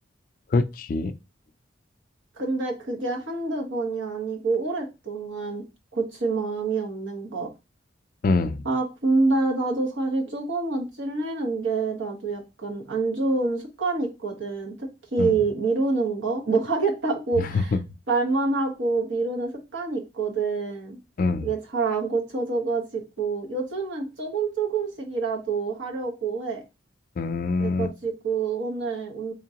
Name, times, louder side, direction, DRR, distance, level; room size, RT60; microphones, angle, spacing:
voice 1, 0.5-1.1 8.2-8.6 15.2-15.3 17.4-17.8 21.2-21.5 27.2-27.9, left 3 dB, 45° left, 0.3 m, -24 dB
voice 2, 2.4-5.6 5.9-7.5 8.6-17.8 18.1-21.0 21.4-26.6 27.6-29.3, right 3 dB, 80° right, 1.1 m, -27 dB
3.7 x 3.6 x 2.8 m
head